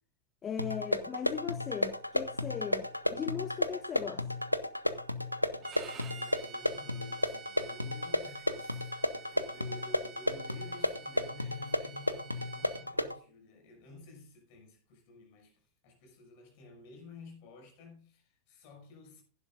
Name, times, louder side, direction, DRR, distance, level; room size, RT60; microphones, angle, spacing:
voice 1, 0.4-4.3, left 8 dB, 25° left, 0.5 m, -38 dB
sound 1, 0.6-13.2, left 1 dB, 85° left, 0.6 m, -33 dB
voice 2, 5.5-9.0 9.3-19.2, left 3 dB, 45° left, 5.9 m, -52 dB
Bowed string instrument, 5.6-12.9, right 8 dB, 30° right, 1.4 m, -51 dB
16.0 x 11.0 x 2.5 m
figure-of-eight pair, 90°, 0 cm